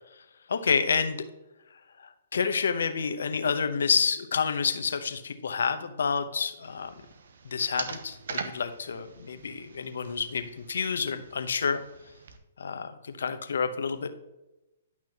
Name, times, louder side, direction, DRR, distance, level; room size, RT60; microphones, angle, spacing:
voice 1, 0.5-1.2 2.3-6.9 7.4-11.8 12.6-14.1, left 5 dB, 75° left, 9 dB, 0.9 m, -29 dB
sound 1, 6.6-12.4, right 5 dB, 70° right, 0.9 m, -42 dB
11.0 x 6.0 x 2.9 m, 0.98 s
hypercardioid pair, 130°, 0 cm